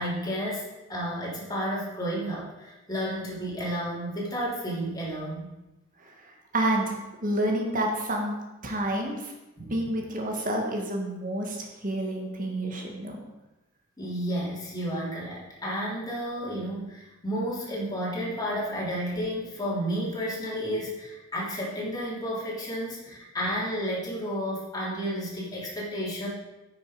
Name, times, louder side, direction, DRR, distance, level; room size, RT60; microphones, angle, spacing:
voice 1, 0.0-5.5 9.6-9.8 14.0-26.3, equal, 20° left, -6 dB, 3.1 m, -32 dB
voice 2, 6.5-7.0 7.2-8.3 8.6-9.3 9.7-13.2, right 1 dB, 45° right, 1 dB, 1.8 m, -29 dB
9.5 x 6.5 x 5.0 m, 1.0 s
head